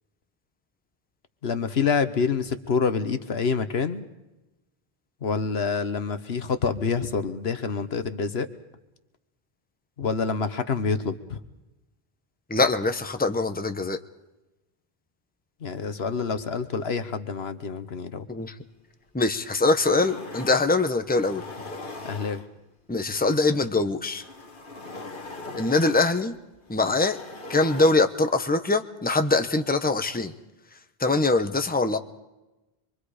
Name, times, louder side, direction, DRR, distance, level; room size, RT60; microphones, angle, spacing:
voice 1, 1.4-4.1 5.2-8.5 10.0-11.4 15.6-18.3 22.0-22.4, left 5 dB, 75° left, 10 dB, 1.4 m, -27 dB
voice 2, 12.5-14.0 18.3-18.5 19.1-21.4 22.9-24.2 25.6-26.3 26.7-27.2 27.5-30.3 31.0-32.0, left 3 dB, 10° left, 7 dB, 1.0 m, -23 dB
sound 1, 19.1-19.2 19.6-20.7 21.1-22.8 23.9-27.9, left 2 dB, 55° left, 1.9 m, -40 dB
26.0 x 23.5 x 5.0 m, 1.0 s
omnidirectional pair, 1.1 m